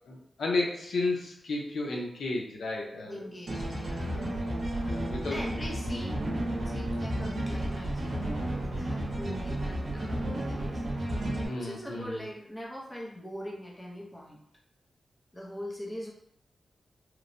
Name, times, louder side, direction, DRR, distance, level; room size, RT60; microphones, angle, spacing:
voice 1, 0.0-3.2 4.3-4.5 4.8-5.4 5.9-6.0 11.4-12.2, left 2 dB, 90° left, -1 dB, 0.6 m, -33 dB
voice 2, 3.1-4.3 5.3-8.4 8.6-10.8 11.5-14.4 15.3-16.1, equal, 10° left, -3 dB, 0.6 m, -42 dB
sound 1, 3.5-11.5, right 1 dB, 70° right, 0.7 m, -32 dB
2.9 x 2.1 x 2.5 m, 0.74 s
wide cardioid pair, 125°, 0 cm